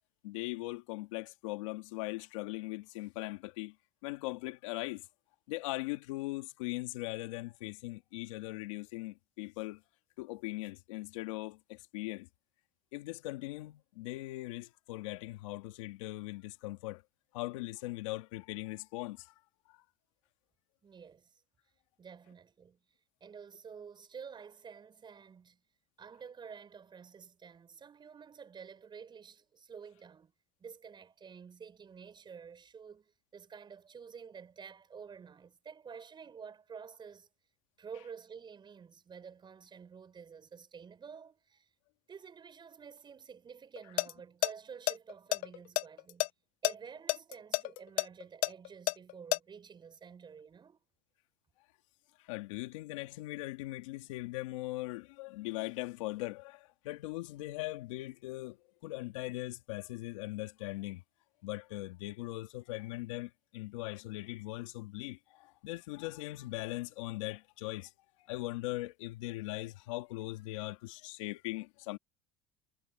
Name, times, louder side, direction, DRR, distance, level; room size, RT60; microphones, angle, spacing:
voice 1, 0.2-3.7 4.0-5.1 5.5-9.8 10.2-12.3 12.9-17.0 17.3-19.3 19.7-19.8 52.2-58.6 58.8-61.0 61.4-67.9 68.2-72.0, left 19 dB, 85° left, 2.0 m, -40 dB
voice 2, 20.8-21.4 22.0-22.8 23.2-25.6 26.0-30.3 30.6-37.3 37.8-41.7 42.1-46.3 46.6-50.8, right 6 dB, 30° right, 6.3 m, -50 dB
sound 1, 43.8-44.1 44.4-44.5 44.9-46.3 46.6-46.7 47.1-49.4, left 22 dB, 60° left, 0.7 m, -30 dB
supercardioid pair, 105°, 16 cm